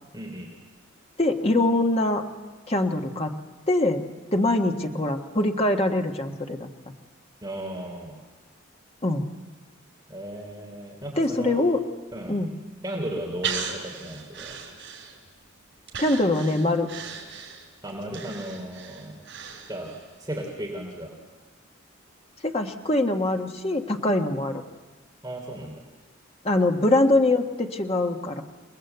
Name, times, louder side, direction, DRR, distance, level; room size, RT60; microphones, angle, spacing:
voice 1, 0.1-0.5 7.4-8.2 10.1-11.6 12.1-12.4 12.8-14.5 17.8-19.2 19.7-19.9 20.2-21.1 25.2-25.8, right 1 dB, 20° right, -1 dB, 3.2 m, -35 dB
voice 2, 1.2-2.2 2.7-3.3 3.7-4.0 4.3-6.7 9.0-9.3 11.2-11.8 12.3-12.5 16.0-16.9 22.4-24.6 26.4-28.4, left 2 dB, 30° left, 4 dB, 1.4 m, -23 dB
Breathing, 13.4-15.4 15.9-20.1 20.4-20.5, right 7 dB, 65° right, 5.2 m, -36 dB
28.5 x 20.0 x 8.1 m, 1.3 s
head